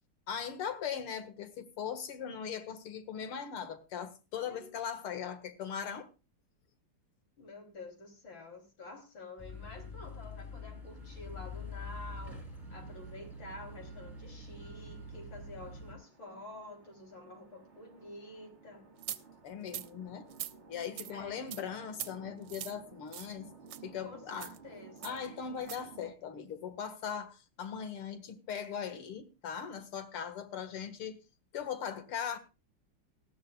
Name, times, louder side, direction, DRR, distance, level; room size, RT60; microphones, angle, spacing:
voice 1, 0.3-6.1 19.4-20.3 20.7-23.5 23.8-24.5 25.0-31.2 31.5-32.4, left 7 dB, 85° left, 2.6 m, -39 dB
voice 2, 4.4-4.7 7.4-12.4 12.7-18.9 21.1-21.4 24.0-25.2, left 2 dB, 60° left, 4.2 m, -49 dB
sound 1, 9.4-15.9, left 2 dB, 15° left, 5.6 m, -45 dB
sound 2, 10.6-26.1, right 5 dB, 35° right, 1.6 m, -57 dB
sound 3, 19.0-19.2 19.7-19.9 20.3-20.5 21.0-21.1 21.5-21.6 21.9-22.1 22.5-22.7 23.1-23.3 23.7-23.8 24.3-24.6 25.0-25.2 25.6-25.8, right 12 dB, 70° right, 1.5 m, -41 dB
19.0 x 14.5 x 2.3 m
omnidirectional pair, 2.4 m